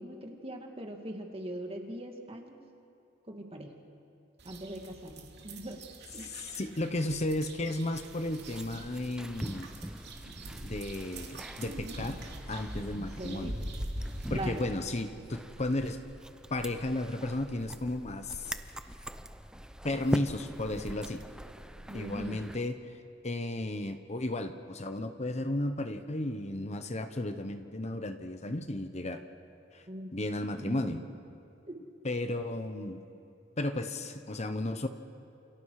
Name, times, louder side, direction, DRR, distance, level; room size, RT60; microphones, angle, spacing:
voice 1, 0.0-2.6 3.3-3.8 4.4-5.8 6.1-6.3 12.9-13.6 14.3-14.7 21.9-22.4 29.9-30.1 30.6-31.0 31.7-31.8, right 1 dB, 30° right, 3 dB, 2.3 m, -41 dB
sound 1, 4.4-14.6, right 1 dB, 60° right, 2.9 m, -43 dB
voice 2, 6.2-9.7 10.6-12.2 12.5-13.6 14.3-16.0 16.5-18.6 19.8-21.2 21.9-22.8 23.2-29.2 29.7-29.9 30.1-31.0 32.0-33.0 33.6-34.9, left 1 dB, 35° left, 8 dB, 1.0 m, -34 dB
sound 2, 7.9-22.6, equal, 5° right, 0.7 m, -43 dB
29.0 x 28.5 x 4.9 m, 2.5 s
head